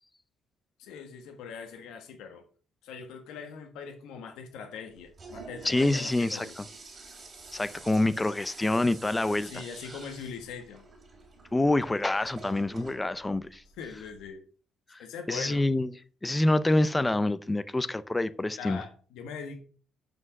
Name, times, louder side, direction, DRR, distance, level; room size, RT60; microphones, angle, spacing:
voice 1, 0.8-2.4 2.8-6.5 9.4-10.8 13.8-14.4 15.0-15.6 18.6-19.6, left 6 dB, 85° left, 1.5 m, -41 dB
Toilet flush, 4.9-14.3, right 3 dB, 25° right, 3.6 m, -48 dB
voice 2, 5.6-6.6 7.5-9.5 11.5-13.6 14.9-15.0 15.3-15.9 16.2-18.8, left 2 dB, 10° left, 0.4 m, -26 dB
7.6 x 6.2 x 5.3 m
cardioid pair, 160°, 0 cm